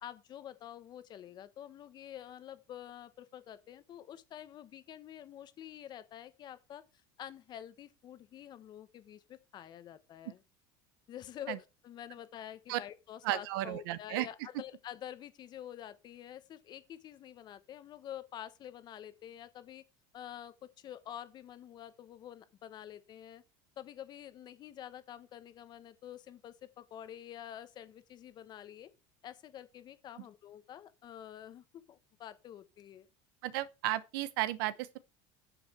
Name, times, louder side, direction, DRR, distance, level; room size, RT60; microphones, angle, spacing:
voice 1, 0.0-6.8 7.2-10.4 11.1-19.8 20.1-23.4 23.8-28.9 29.2-33.1, left 11 dB, 40° left, 1.2 m, -48 dB
voice 2, 13.2-14.3 33.4-35.0, right 15 dB, 85° right, 1.0 m, -34 dB
9.0 x 7.0 x 4.7 m
cardioid pair, 140°, 11 cm